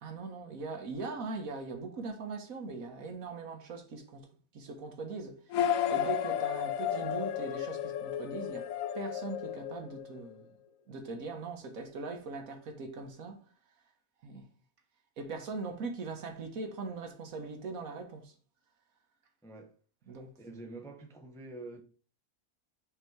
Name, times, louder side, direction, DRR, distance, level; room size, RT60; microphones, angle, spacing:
voice 1, 0.0-4.3 4.5-8.7 8.9-10.6 10.9-13.4 14.2-14.5 15.2-18.3 20.1-20.3, right 3 dB, 75° right, 1.5 m, -40 dB
sound 1, 5.5-10.3, left 10 dB, 75° left, 1.0 m, -33 dB
voice 2, 19.4-19.7 20.4-21.8, right 2 dB, 5° left, 0.4 m, -46 dB
5.5 x 4.0 x 4.5 m
omnidirectional pair, 1.5 m